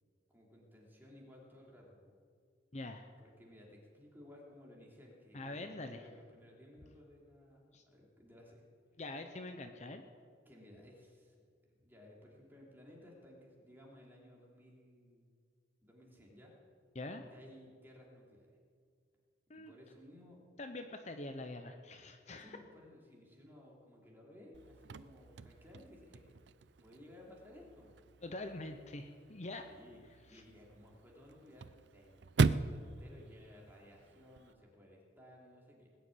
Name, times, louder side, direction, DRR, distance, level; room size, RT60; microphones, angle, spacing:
voice 1, 0.3-2.1 3.2-8.7 10.4-11.4 11.8-15.3 15.8-16.5 17.2-18.6 19.5-20.4 22.4-26.2 26.8-28.0 29.7-35.9, left 1 dB, 10° right, -2 dB, 3.1 m, -58 dB
voice 2, 2.7-3.1 5.3-6.0 7.7-7.8 9.0-10.0 16.9-17.2 19.5-19.7 20.6-22.6 28.2-29.6 30.3-30.4, left 2 dB, 40° left, 6 dB, 0.8 m, -44 dB
Chirp tweet / Car / Slam, 24.5-34.5, right 4 dB, 65° right, 0.4 m, -39 dB
19.5 x 7.0 x 9.2 m, 2.2 s
head